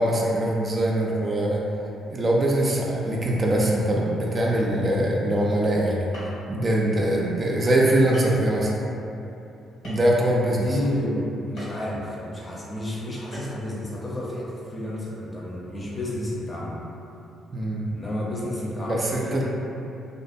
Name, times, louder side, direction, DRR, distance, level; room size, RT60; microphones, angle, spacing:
voice 1, 0.0-1.6 2.1-6.1 6.5-8.7 9.8-10.7 17.5-17.8 18.8-19.4, right 1 dB, 35° right, -3 dB, 0.3 m, -22 dB
sound 1, 6.1-6.5 7.3-7.4 8.1-8.4 9.8-10.2 11.6-11.8 13.3-13.6, equal, 70° left, 1.1 m, -40 dB
voice 2, 10.4-16.8 17.9-19.4, left 1 dB, 25° left, -5 dB, 0.6 m, -31 dB
2.5 x 2.2 x 2.6 m, 2.8 s
cardioid pair, 85°, 0 cm